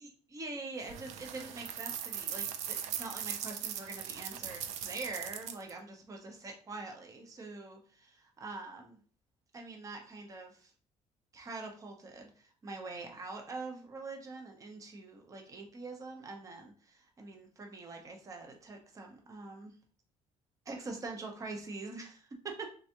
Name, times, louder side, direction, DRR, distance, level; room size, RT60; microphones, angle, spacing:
voice 1, 0.0-9.0 9.5-10.7 11.3-19.7 20.7-22.7, right 3 dB, 30° right, 3 dB, 1.0 m, -44 dB
sound 1, 0.8-5.7, right 9 dB, 80° right, 0.5 m, -39 dB
3.8 x 3.5 x 3.0 m, 0.41 s
cardioid pair, 140°, 12 cm